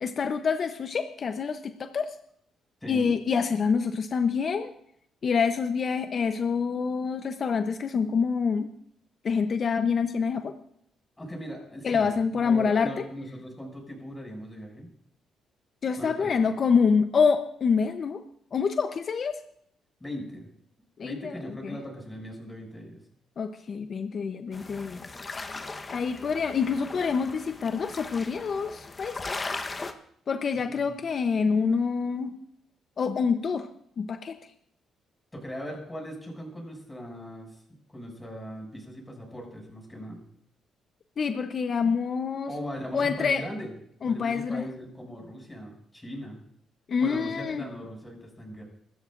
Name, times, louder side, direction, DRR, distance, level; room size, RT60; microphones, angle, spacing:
voice 1, 0.0-2.2 2.9-4.7 5.2-8.7 9.2-10.5 11.8-13.0 15.8-18.2 18.5-19.4 21.0-21.8 23.4-25.0 25.9-29.2 30.3-32.4 33.0-33.7 34.0-34.4 41.2-42.5 42.9-43.4 44.0-44.6 46.9-47.7, left 5 dB, 50° left, 7 dB, 0.8 m, -26 dB
voice 2, 2.8-3.1 11.2-12.1 12.3-14.9 16.0-16.4 20.0-20.5 21.0-23.0 30.7-31.0 35.3-37.6 37.9-40.2 42.5-43.7 44.0-46.4 47.0-48.6, equal, 10° left, 0 dB, 7.0 m, -39 dB
sound 1, 24.5-29.9, left 3 dB, 30° left, 1.1 m, -38 dB
25.0 x 13.5 x 2.6 m, 0.68 s
cardioid pair, 90°, 0 cm